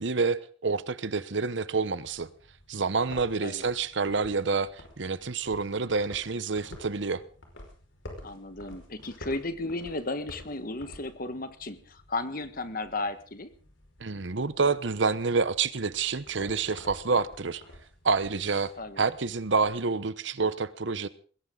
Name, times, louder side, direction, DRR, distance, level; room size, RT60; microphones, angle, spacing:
voice 1, 0.0-2.3 2.7-7.2 14.0-17.6 18.0-21.1, right 4 dB, 70° right, 0.9 m, -28 dB
sound 1, 2.1-19.7, left 1 dB, 80° left, 5.2 m, -50 dB
voice 2, 8.2-13.5 18.8-19.0, left 2 dB, 45° left, 1.5 m, -34 dB
21.0 x 16.5 x 3.9 m
head